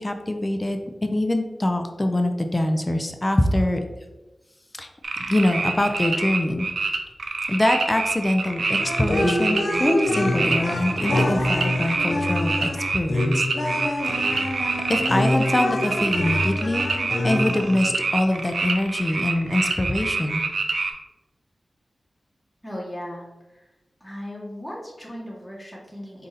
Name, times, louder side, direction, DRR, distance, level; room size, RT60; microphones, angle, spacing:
voice 1, 0.0-3.8 4.7-4.9 5.3-6.7 7.5-13.5 14.1-14.3 14.7-16.9 17.2-20.4, left 1 dB, 25° left, 5 dB, 0.5 m, -24 dB
sound 1, 5.0-20.9, right 3 dB, 85° right, 0.5 m, -26 dB
sound 2, 8.8-18.0, left 1 dB, 70° left, 0.7 m, -26 dB
voice 2, 22.6-23.7 24.0-26.3, equal, 5° left, -5 dB, 1.4 m, -37 dB
4.8 x 2.7 x 4.0 m, 1.1 s
cardioid pair, 50°, 0 cm